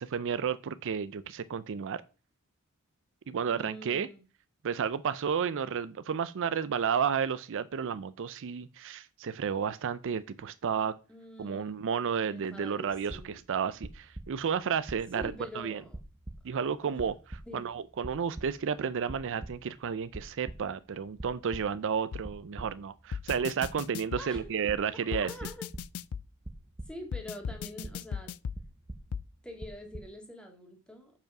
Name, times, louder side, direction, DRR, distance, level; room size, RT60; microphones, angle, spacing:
voice 1, 0.1-2.0 3.3-4.1 4.6-10.9 11.4-15.8 16.4-17.1 17.5-25.3, right 7 dB, 60° right, 0.4 m, -32 dB
voice 2, 3.4-4.2 11.1-11.8 12.3-13.4 15.1-16.0 16.5-16.6 16.8-17.0 17.5-17.7 24.2-24.6 25.1-25.7 26.9-28.3 29.4-31.1, equal, 5° left, 1.8 m, -45 dB
sound 1, 13.0-13.5 13.8-14.6 14.9-15.6 15.9-16.7 17.0-17.7 18.0-18.8 19.0-19.8 20.1-20.8 21.1-21.9 22.2-23.0 23.3-24.1 24.3-25.0 25.4-27.2 27.5-28.3 28.6-29.3 29.6-30.0, right 1 dB, 20° right, 0.9 m, -44 dB
sound 2, 22.1-22.3 23.1-24.3 25.1-26.3 27.1-28.6 29.1-29.2, left 7 dB, 70° left, 0.4 m, -36 dB
7.0 x 5.3 x 5.9 m
head